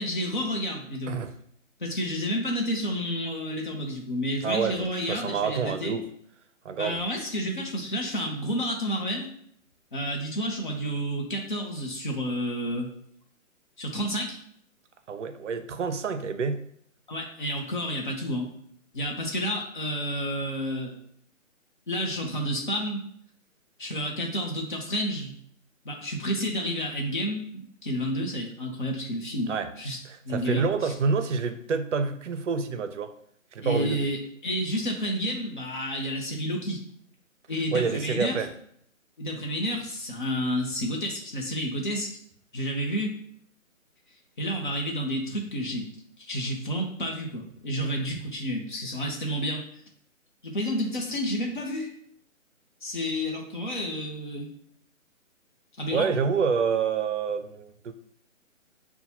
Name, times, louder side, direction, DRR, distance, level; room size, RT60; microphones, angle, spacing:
voice 1, 0.0-1.2 1.8-6.0 6.8-9.3 9.9-12.9 13.8-14.4 17.1-18.5 18.9-21.0 21.9-23.0 23.8-25.3 25.8-30.0 30.3-30.7 33.6-36.8 37.5-38.3 39.2-42.1 42.5-43.2 44.4-45.9 46.2-49.6 50.4-51.9 52.8-54.5 55.8-56.1, equal, 40° left, 0.7 m, -30 dB
voice 2, 4.4-6.1 6.6-7.0 15.1-16.7 29.5-29.7 30.0-33.1 33.5-34.2 37.7-38.5 55.9-57.9, right 5 dB, 60° right, 0.5 m, -28 dB
5.6 x 2.3 x 2.8 m
hypercardioid pair, 170°, 40 cm